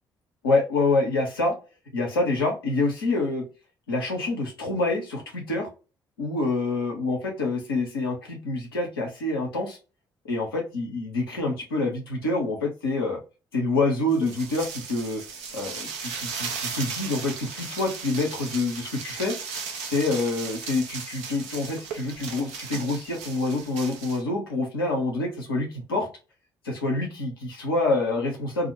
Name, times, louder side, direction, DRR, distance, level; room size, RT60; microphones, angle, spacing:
voice 1, 0.4-1.6 1.9-3.4 3.9-5.7 6.2-9.8 10.2-13.2 13.5-15.2 15.5-19.3 19.8-26.1 26.6-28.7, left 2 dB, 85° left, 0 dB, 0.6 m, -27 dB
sound 1, 14.1-24.2, right 5 dB, 65° right, 0.6 m, -36 dB
2.4 x 2.0 x 2.6 m, 0.31 s
figure-of-eight pair, 45°, 12 cm